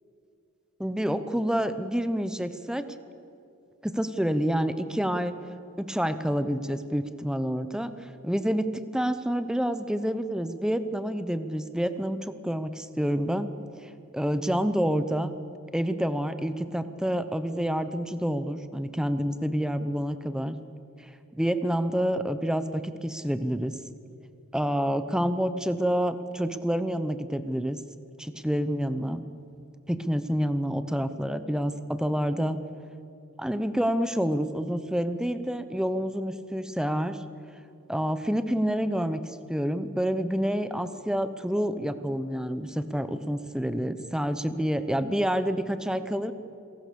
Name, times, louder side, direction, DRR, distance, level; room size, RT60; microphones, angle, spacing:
voice 1, 0.8-2.9 3.8-5.4 5.8-13.5 13.8-15.3 15.7-20.6 21.3-23.8 24.5-27.8 28.2-29.2 29.9-32.6 33.4-37.2 37.9-39.2 39.5-46.3, equal, 5° right, 11 dB, 0.8 m, -28 dB
27.0 x 18.0 x 6.9 m, 2.7 s
head